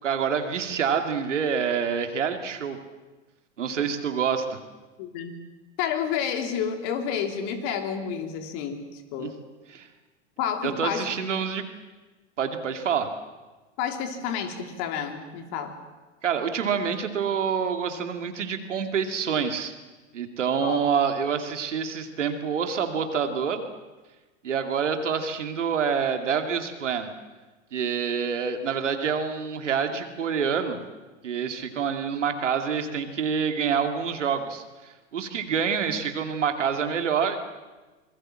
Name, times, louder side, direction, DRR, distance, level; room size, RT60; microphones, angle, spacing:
voice 1, 0.0-2.8 3.6-4.6 9.2-9.3 9.7-9.9 10.6-11.6 12.4-13.1 16.2-19.7 20.1-23.6 24.4-27.1 27.7-30.8 31.2-37.4, right 7 dB, 80° right, 6 dB, 2.5 m, -27 dB
voice 2, 5.0-5.4 5.8-9.4 10.4-11.1 13.8-15.7 20.6-20.8 29.9-30.0, left 7 dB, 55° left, 5 dB, 3.6 m, -30 dB
26.0 x 21.5 x 7.6 m, 1.2 s
hypercardioid pair, 90°, 36 cm